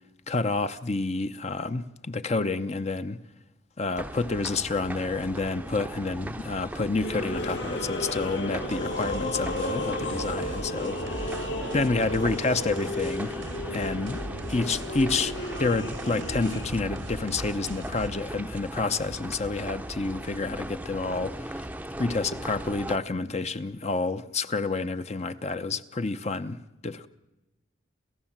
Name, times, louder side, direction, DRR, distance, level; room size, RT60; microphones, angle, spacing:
voice 1, 0.3-3.2 3.8-11.4 11.7-13.3 13.7-14.2 14.5-15.3 15.6-21.6 22.0-27.1, left 3 dB, 35° left, 0.8 m, -29 dB
sound 1, 4.0-23.0, right 1 dB, 10° right, 0.7 m, -38 dB
sound 2, 7.0-16.6, left 1 dB, 75° left, 3.5 m, -34 dB
sound 3, 8.7-18.1, right 2 dB, 90° right, 1.6 m, -41 dB
28.5 x 15.0 x 7.4 m
head